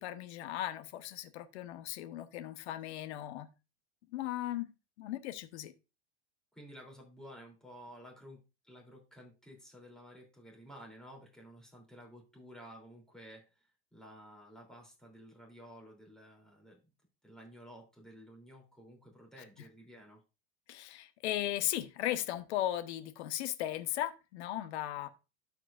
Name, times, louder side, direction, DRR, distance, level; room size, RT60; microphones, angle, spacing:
voice 1, 0.0-3.5 4.1-4.7 5.0-5.7 20.7-25.1, left 13 dB, 75° left, 1.0 m, -37 dB
voice 2, 6.5-8.4 8.6-16.8 17.2-20.2, equal, ahead, 3.2 m, -53 dB
13.0 x 4.9 x 2.5 m
supercardioid pair, 130°, 34 cm